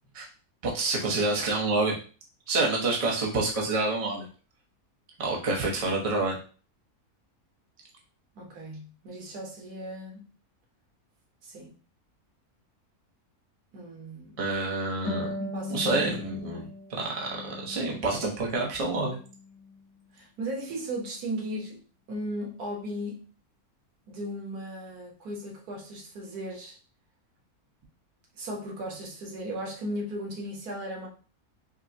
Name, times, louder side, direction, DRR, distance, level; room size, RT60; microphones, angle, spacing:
voice 1, 0.6-2.0 2.5-4.3 5.2-6.4 14.4-15.3 15.7-19.2, right 2 dB, 30° right, 0.8 m, -28 dB
voice 2, 8.4-10.2 11.4-11.7 13.7-14.4 15.4-15.8 16.5-16.7 20.2-21.8 22.1-23.2 24.1-26.8 28.3-31.1, right 1 dB, 90° right, 1.6 m, -36 dB
Harp, 15.0-18.4 18.8-19.8, left 2 dB, 25° left, 1.0 m, -38 dB
5.2 x 2.1 x 2.7 m
omnidirectional pair, 1.6 m